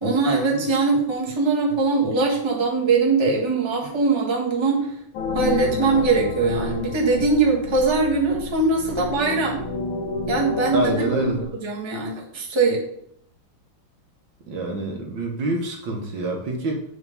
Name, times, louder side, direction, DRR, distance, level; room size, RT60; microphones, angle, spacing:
voice 1, 0.0-4.9 5.3-9.6 10.3-11.1 11.6-12.8, right 3 dB, 15° right, -2 dB, 1.2 m, -21 dB
sound 1, 5.1-11.4, left 4 dB, 85° left, 1.6 m, -30 dB
voice 2, 10.7-11.4 14.5-16.8, right 1 dB, 65° right, 1 dB, 1.8 m, -26 dB
7.5 x 3.6 x 5.4 m, 0.69 s
omnidirectional pair, 2.2 m